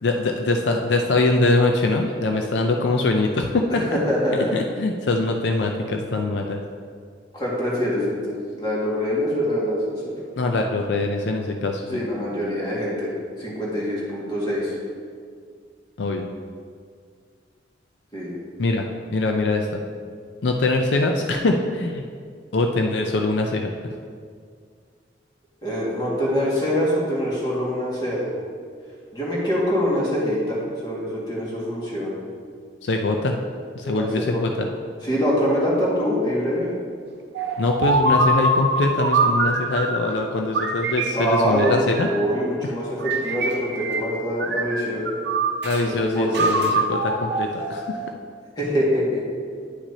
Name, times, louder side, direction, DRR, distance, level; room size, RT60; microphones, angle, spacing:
voice 1, 0.0-3.8 4.5-6.6 10.4-12.0 16.0-16.3 18.6-18.8 19.1-19.8 20.4-22.0 22.5-23.7 32.8-33.4 33.8-34.7 37.6-42.1 45.6-48.0, left 2 dB, 75° left, 3 dB, 0.5 m, -23 dB
voice 2, 3.7-4.6 7.3-10.1 11.9-13.1 13.4-14.8 18.1-18.4 25.6-28.3 29.1-32.2 33.9-34.4 35.0-36.7 41.1-45.1 45.8-46.8 48.6-49.2, equal, 25° left, -6 dB, 1.9 m, -24 dB
sound 1, 37.3-40.1 40.5-42.3 43.0-44.1 44.4-45.8 46.3-48.1, right 2 dB, 70° right, 0.7 m, -24 dB
9.7 x 6.0 x 2.8 m, 2.1 s
head